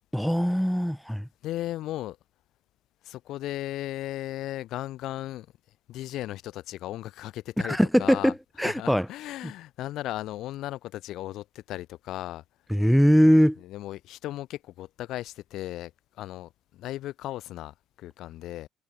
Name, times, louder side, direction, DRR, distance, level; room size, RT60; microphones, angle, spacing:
voice 1, 0.1-1.3 7.6-9.1 12.7-13.6, equal, ahead, 0.3 m, -21 dB
voice 2, 1.4-2.2 3.0-5.5 5.9-8.3 8.6-12.4 13.6-15.9 16.2-18.7, left 14 dB, 80° left, 2.9 m, -36 dB
cardioid pair, 150°, 0 cm